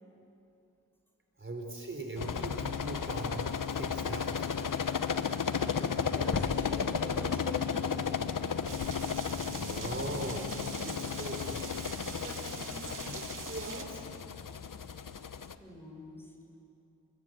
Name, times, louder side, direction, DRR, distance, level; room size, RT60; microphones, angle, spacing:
voice 1, 1.4-4.3 9.5-14.1, right 2 dB, 40° right, 2 dB, 4.0 m, -41 dB
sound 1, 2.2-15.5, left 6 dB, 85° left, 1.0 m, -34 dB
voice 2, 6.0-8.3 15.6-16.3, equal, 5° left, 1 dB, 6.0 m, -45 dB
sound 2, 6.3-9.2, left 3 dB, 40° left, 1.4 m, -42 dB
sound 3, 8.7-13.8, right 4 dB, 80° right, 2.3 m, -44 dB
27.0 x 22.0 x 9.3 m, 2.8 s
wide cardioid pair, 55°, 31 cm